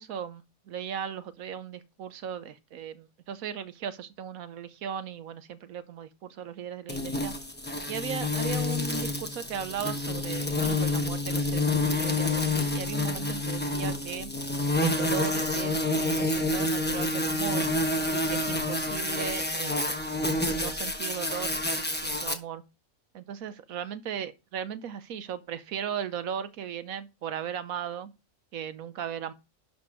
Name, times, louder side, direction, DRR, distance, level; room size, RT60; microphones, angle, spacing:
voice 1, 0.0-7.3 7.9-14.3 14.8-17.7 18.1-19.9 20.5-22.6 23.1-28.1 28.5-29.3, right 8 dB, 75° right, 1.2 m, -37 dB
sound 1, 6.9-22.3, left 2 dB, 10° left, 0.9 m, -28 dB
11.5 x 4.5 x 4.8 m
omnidirectional pair, 1.5 m